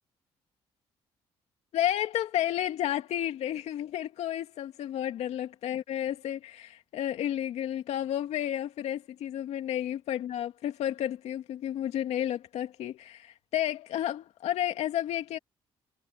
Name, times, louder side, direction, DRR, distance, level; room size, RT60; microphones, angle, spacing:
voice 1, 1.7-15.4, left 11 dB, 75° left, 2.5 m, -31 dB
supercardioid pair, 65°, 11 cm